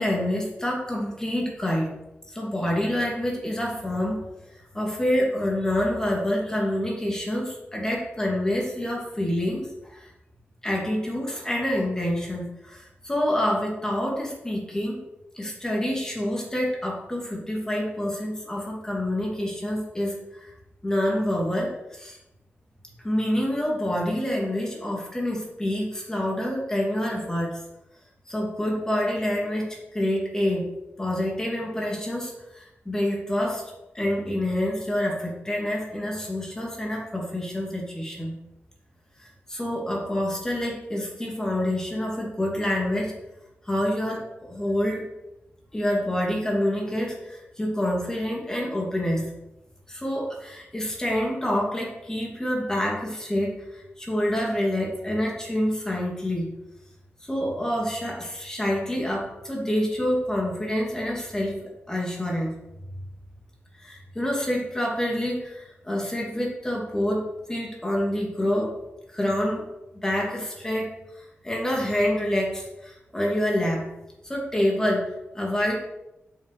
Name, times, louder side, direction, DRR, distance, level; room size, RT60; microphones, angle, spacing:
voice 1, 0.0-1.9 2.3-10.1 10.6-15.0 15.3-20.5 20.8-22.2 23.0-27.6 28.3-30.7 31.0-38.3 39.2-43.1 43.6-45.1 45.7-49.3 49.9-56.5 57.2-62.6 63.8-68.7 69.1-69.7 69.9-73.9 74.2-75.8, left 1 dB, 15° left, -2 dB, 2.7 m, -27 dB
8.3 x 6.4 x 6.6 m, 0.93 s
wide cardioid pair, 150°, 4 cm